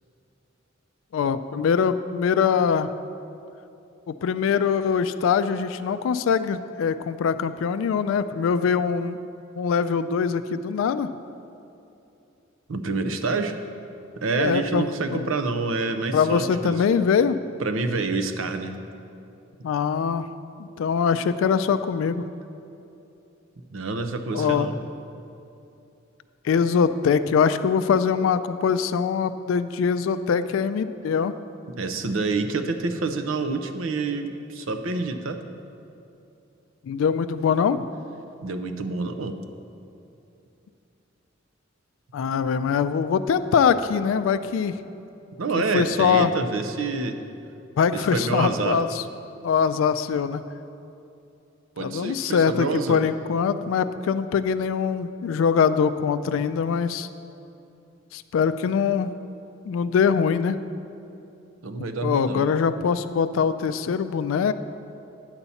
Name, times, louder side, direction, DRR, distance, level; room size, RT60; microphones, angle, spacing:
voice 1, 1.1-2.9 4.1-9.2 9.6-11.1 14.3-15.2 16.1-17.4 19.6-20.2 20.6-22.2 24.3-24.7 26.4-31.3 36.8-37.9 42.1-44.8 45.7-46.3 47.8-49.0 49.4-50.4 51.8-57.1 58.1-59.1 59.7-60.6 62.0-64.5, left 6 dB, 75° left, 12 dB, 0.3 m, -23 dB
voice 2, 12.7-13.6 14.1-16.8 17.6-18.8 23.7-24.8 31.8-35.4 38.4-39.4 45.4-47.2 47.9-48.8 51.8-53.0 61.6-62.5, right 3 dB, 85° right, 8 dB, 0.6 m, -27 dB
9.7 x 4.1 x 6.9 m, 2.7 s
head